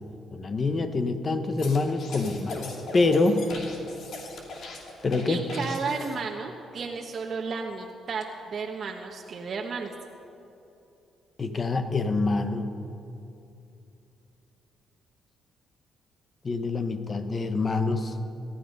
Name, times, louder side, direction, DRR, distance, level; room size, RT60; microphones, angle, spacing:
voice 1, 0.3-3.5 5.0-5.4 11.4-12.7 16.4-18.1, left 3 dB, 35° left, 9 dB, 1.2 m, -26 dB
sound 1, 1.6-6.1, left 2 dB, 70° left, 2.6 m, -40 dB
voice 2, 5.3-9.9, right 4 dB, 50° right, 0 dB, 1.2 m, -33 dB
18.5 x 13.0 x 5.4 m, 2.8 s
cardioid pair, 90°, 0 cm